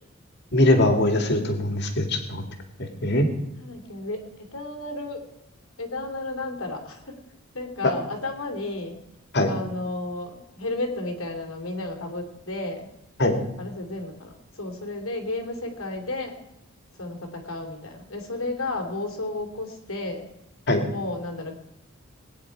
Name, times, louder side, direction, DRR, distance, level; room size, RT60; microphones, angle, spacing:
voice 1, 0.5-2.4 2.8-3.3 7.8-7.9 9.3-9.5 13.2-13.4 20.7-20.8, left 1 dB, 55° left, 5 dB, 2.3 m, -21 dB
voice 2, 3.6-5.2 5.8-7.2 7.5-9.0 9.5-12.9 13.6-16.4 17.0-20.3 20.9-21.5, left 2 dB, 85° left, 4 dB, 3.1 m, -33 dB
20.0 x 10.0 x 4.7 m, 0.86 s
head